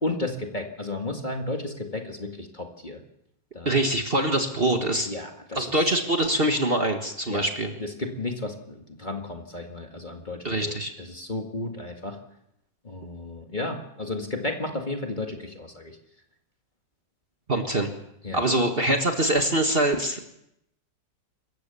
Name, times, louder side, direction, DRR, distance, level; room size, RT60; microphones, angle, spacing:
voice 1, 0.0-3.0 3.5-3.7 5.1-5.8 7.3-7.5 7.8-12.2 12.8-16.0 18.2-18.4, left 2 dB, 25° left, 3 dB, 2.0 m, -33 dB
voice 2, 3.7-5.1 5.6-7.7 10.4-10.9 17.5-17.9 18.3-20.2, right 1 dB, 35° right, 4 dB, 1.7 m, -24 dB
26.0 x 14.5 x 7.0 m, 0.80 s
omnidirectional pair, 1.9 m